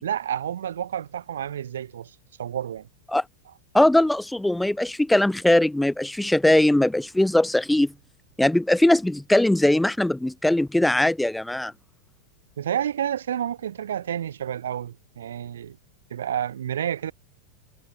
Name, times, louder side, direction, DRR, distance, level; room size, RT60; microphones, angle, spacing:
voice 1, 0.0-2.1 2.4-2.9 12.6-15.8 16.1-17.1, right 10 dB, 65° right, 1.8 m, -29 dB
voice 2, 3.7-7.9 8.4-11.7, left 1 dB, 5° left, 0.6 m, -20 dB
figure-of-eight pair, 90°, 0 cm